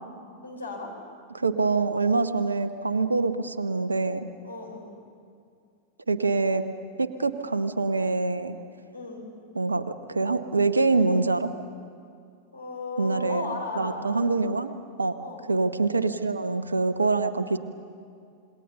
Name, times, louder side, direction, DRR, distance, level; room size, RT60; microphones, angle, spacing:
voice 1, 0.4-0.9 4.4-4.9 8.9-9.3 12.5-14.2 15.2-15.5, left 3 dB, 85° left, -1 dB, 4.5 m, -35 dB
voice 2, 1.3-4.3 6.1-6.6 7.0-8.6 9.5-9.8 10.1-11.5 13.0-13.5 13.8-14.7 15.0-15.2 15.5-17.6, right 3 dB, 80° right, 11 dB, 1.0 m, -25 dB
27.0 x 21.5 x 6.8 m, 2.3 s
figure-of-eight pair, 90°, 0 cm